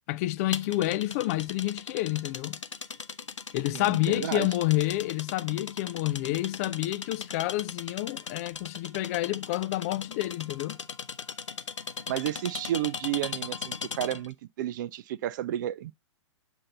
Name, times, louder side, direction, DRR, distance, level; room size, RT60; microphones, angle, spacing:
voice 1, 0.1-2.6 3.5-10.8, left 16 dB, 30° left, 0.3 m, -29 dB
sound 1, 0.5-14.3, left 6 dB, 75° left, 0.6 m, -39 dB
voice 2, 3.7-4.5 12.1-15.9, right 13 dB, 40° right, 0.4 m, -32 dB
7.5 x 2.7 x 5.1 m
figure-of-eight pair, 110°, 16 cm